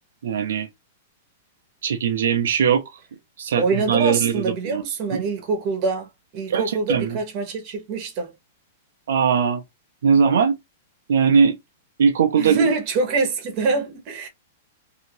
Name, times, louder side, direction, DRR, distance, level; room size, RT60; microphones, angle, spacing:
voice 1, 0.2-0.7 1.8-3.0 3.4-4.8 5.1-5.2 6.5-7.2 9.1-9.6 10.0-10.6 11.1-11.6 12.0-12.7, right 6 dB, 80° right, 0.5 m, -20 dB
voice 2, 3.6-8.3 12.4-14.3, right 4 dB, 35° right, 1.2 m, -25 dB
2.8 x 2.7 x 2.9 m
supercardioid pair, 165°, 0 cm